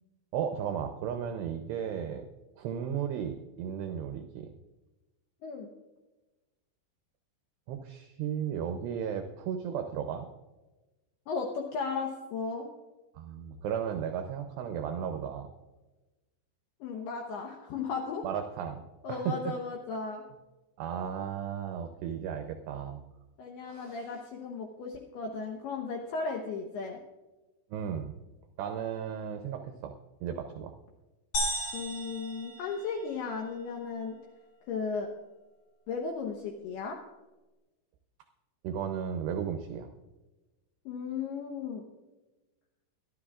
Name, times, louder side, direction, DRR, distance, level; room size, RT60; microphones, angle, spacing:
voice 1, 0.3-2.3 2.6-4.5 7.7-10.3 13.2-15.5 18.2-18.8 19.1-19.5 20.8-23.0 23.7-24.2 27.7-28.1 28.6-29.9 30.2-30.7 38.6-39.9, right 8 dB, 85° right, 6 dB, 2.4 m, -35 dB
voice 2, 11.3-12.7 16.8-18.2 19.0-20.2 23.4-27.0 31.7-34.2 34.7-35.1 35.9-37.0 40.9-41.8, left 5 dB, 75° left, 2 dB, 2.4 m, -35 dB
sound 1, 31.3-33.3, equal, 40° left, 6.5 m, -35 dB
22.5 x 12.5 x 2.4 m, 1.1 s
omnidirectional pair, 5.6 m